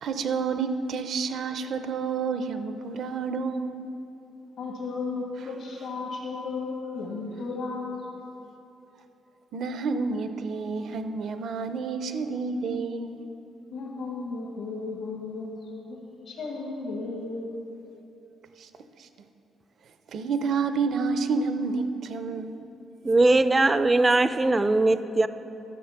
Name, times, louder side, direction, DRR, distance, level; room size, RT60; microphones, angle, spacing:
voice 1, 0.0-3.8 9.5-13.2 18.6-18.7 19.0-19.1 20.1-22.6, right 4 dB, 65° right, 9 dB, 0.6 m, -29 dB
voice 2, 4.6-8.1 13.7-17.5, left 3 dB, 75° left, -5 dB, 1.7 m, -34 dB
voice 3, 23.0-25.3, right 2 dB, 20° right, 12 dB, 0.4 m, -20 dB
11.0 x 7.2 x 5.8 m, 3.0 s
cardioid pair, 90°, 0 cm